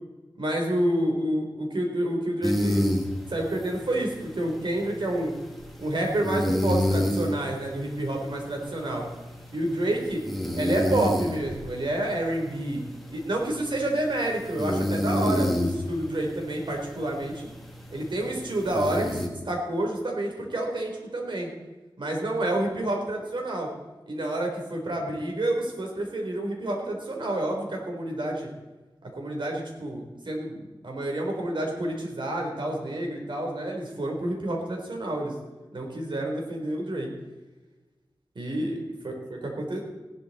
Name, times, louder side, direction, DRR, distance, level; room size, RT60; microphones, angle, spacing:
voice 1, 0.4-2.8 3.3-5.3 5.8-9.0 9.5-10.2 10.5-12.8 13.1-17.5 17.9-21.5 22.0-23.7 24.1-28.5 29.2-35.3 35.7-37.1 38.4-39.8, right 1 dB, 65° right, 1 dB, 3.6 m, -29 dB
sound 1, 2.4-19.3, left 1 dB, ahead, 2.3 m, -30 dB
16.0 x 12.0 x 4.2 m, 1.2 s
wide cardioid pair, 85°, 9 cm